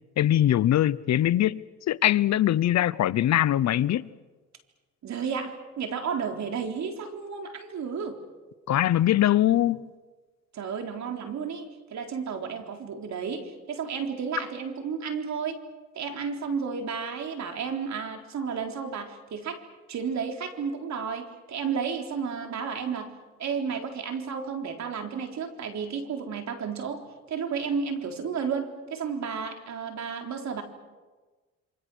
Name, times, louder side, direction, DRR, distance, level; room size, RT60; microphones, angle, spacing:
voice 1, 0.2-4.1 8.7-9.9, left 12 dB, 65° left, 0.8 m, -22 dB
voice 2, 5.0-8.2 10.5-15.6 15.9-19.6 19.9-23.1 23.4-30.6, right 6 dB, 65° right, 3.9 m, -32 dB
28.0 x 26.0 x 6.3 m
cardioid pair, 90°, 30 cm